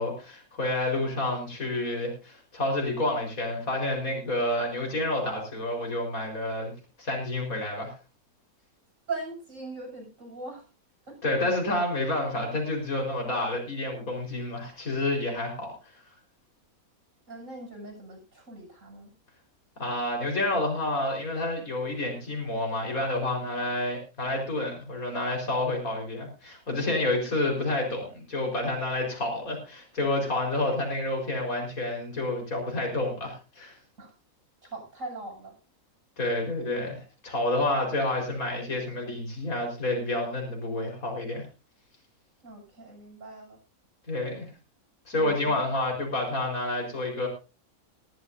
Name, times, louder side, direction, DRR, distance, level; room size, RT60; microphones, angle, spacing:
voice 1, 0.0-6.7 7.0-7.9 11.2-15.7 19.8-33.8 36.2-41.4 44.1-44.5 45.1-47.3, left 2 dB, 70° left, 1 dB, 5.1 m, -29 dB
voice 2, 9.1-10.7 11.1-11.2 17.3-19.1 34.0-34.1 34.6-35.5 42.4-43.6 45.1-45.7, right 3 dB, 60° right, 1 dB, 8.2 m, -40 dB
20.0 x 13.5 x 2.7 m, 0.31 s
omnidirectional pair, 1.5 m